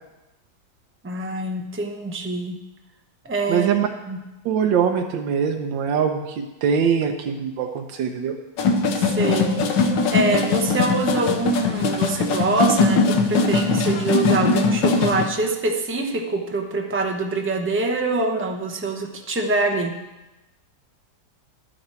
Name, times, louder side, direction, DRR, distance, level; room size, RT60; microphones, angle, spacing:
voice 1, 1.0-2.6 3.2-3.7 4.1-4.2 8.9-9.9 10.1-19.9, right 2 dB, 15° right, 2 dB, 0.4 m, -25 dB
voice 2, 3.5-3.9 4.4-8.3, right 7 dB, 80° right, 4 dB, 1.5 m, -22 dB
sound 1, 8.6-15.3, left 4 dB, 75° left, 1.6 m, -20 dB
11.5 x 9.6 x 4.4 m, 1.0 s
omnidirectional pair, 2.0 m